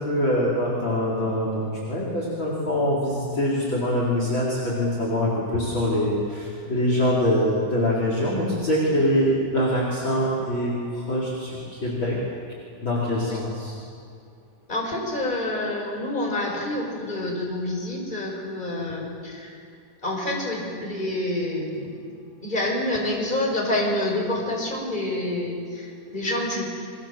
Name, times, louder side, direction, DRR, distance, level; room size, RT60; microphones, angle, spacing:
voice 1, 0.0-12.2 12.8-13.7, left 1 dB, 35° left, -4 dB, 4.9 m, -24 dB
voice 2, 14.7-19.5 20.0-21.9 22.4-26.6, left 1 dB, 15° left, -1 dB, 6.2 m, -27 dB
29.5 x 24.5 x 7.7 m, 2.3 s
omnidirectional pair, 3.7 m